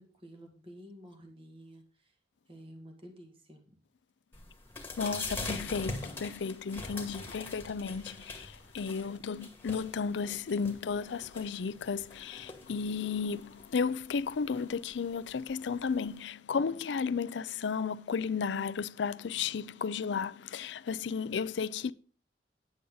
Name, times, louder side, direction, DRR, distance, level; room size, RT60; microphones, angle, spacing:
voice 1, 0.0-2.2 2.5-3.8, equal, 30° right, 1.9 m, -51 dB
sound 1, 4.3-16.2, left 2 dB, 15° left, 1.9 m, -44 dB
voice 2, 5.0-21.9, left 5 dB, 75° left, 0.4 m, -34 dB
9.9 x 8.5 x 3.9 m
head